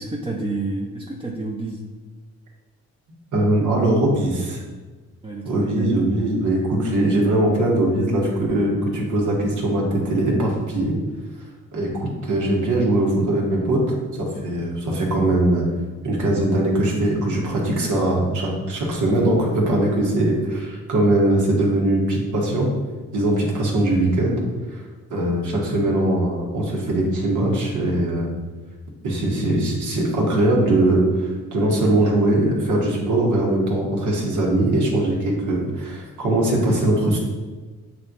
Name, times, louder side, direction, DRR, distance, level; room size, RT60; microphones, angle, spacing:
voice 1, 0.0-1.9 5.2-6.1, right 2 dB, 20° right, -1 dB, 0.8 m, -30 dB
voice 2, 3.3-4.6 5.4-11.0 11.7-15.6 16.0-22.7 23.1-24.4 24.7-24.8 25.1-28.3 29.0-37.2, right 1 dB, 75° right, -2 dB, 1.9 m, -21 dB
8.5 x 3.2 x 4.1 m, 1.3 s
cardioid pair, 90°, 30 cm